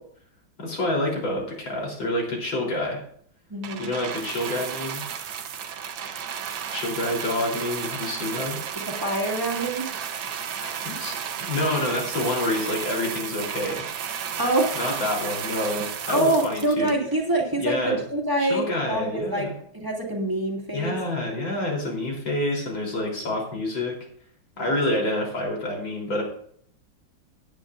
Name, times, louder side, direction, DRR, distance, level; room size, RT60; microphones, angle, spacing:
voice 1, 0.6-3.0 3.8-5.0 6.7-8.6 10.6-13.8 14.7-16.9 17.6-18.0 18.4-19.5 20.7-23.9 24.6-26.2, left 1 dB, 80° left, -1 dB, 4.3 m, -28 dB
voice 2, 3.5-3.9 9.0-9.9 14.4-14.8 16.1-21.0 24.6-24.8, right 1 dB, 10° right, -1 dB, 2.4 m, -25 dB
sound 1, 3.6-17.3 18.1-18.2, right 8 dB, 85° right, 1.7 m, -33 dB
17.0 x 10.0 x 2.5 m, 0.62 s
omnidirectional pair, 2.1 m